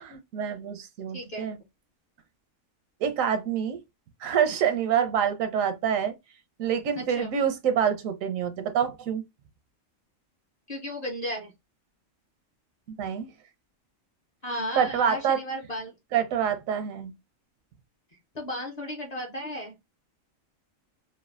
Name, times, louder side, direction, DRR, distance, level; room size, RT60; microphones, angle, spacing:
voice 1, 0.0-1.6 3.0-3.8 4.2-6.1 6.6-9.2 12.9-13.3 14.8-15.4 16.1-17.1, right 8 dB, 85° right, 1.0 m, -26 dB
voice 2, 1.1-1.5 6.9-7.3 10.7-11.5 14.4-15.9 18.3-19.7, equal, 45° left, 0.6 m, -34 dB
3.2 x 2.2 x 2.3 m
omnidirectional pair, 1.4 m